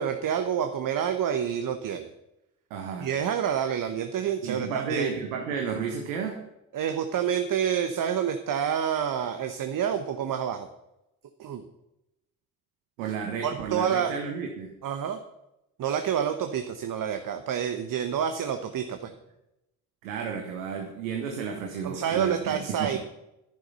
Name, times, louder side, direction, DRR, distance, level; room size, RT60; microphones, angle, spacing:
voice 1, 0.0-2.1 3.0-5.1 6.7-10.7 11.4-11.6 13.4-14.1 14.8-15.2 15.8-19.1 21.8-23.0, right 8 dB, 55° right, 7 dB, 1.1 m, -28 dB
voice 2, 2.7-3.1 4.4-6.4 13.0-14.7 20.0-23.0, right 6 dB, 85° right, 3 dB, 1.3 m, -32 dB
11.0 x 10.5 x 5.7 m, 0.88 s
hypercardioid pair, 45°, 38 cm